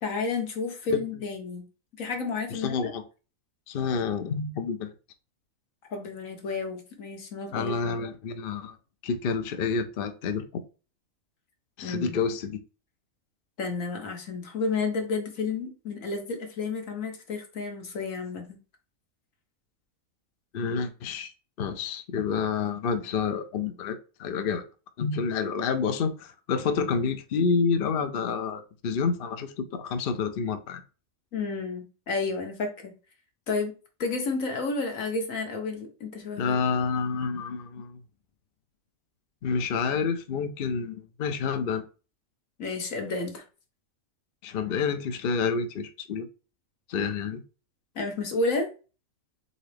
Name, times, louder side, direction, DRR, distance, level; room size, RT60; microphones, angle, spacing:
voice 1, 0.0-1.6 2.0-2.9 5.9-7.9 11.8-12.2 13.6-18.6 31.3-32.9 33.5-33.7 34.0-36.6 42.6-43.4 47.9-48.7, left 3 dB, 70° left, 1.6 m, -31 dB
voice 2, 2.5-3.0 3.7-4.9 7.5-8.8 9.0-10.6 11.8-12.6 20.5-21.3 21.6-24.6 25.0-30.8 36.4-38.0 39.4-41.8 44.4-46.3 46.9-47.4, left 5 dB, 55° left, 0.7 m, -28 dB
4.0 x 4.0 x 3.3 m
omnidirectional pair, 1.4 m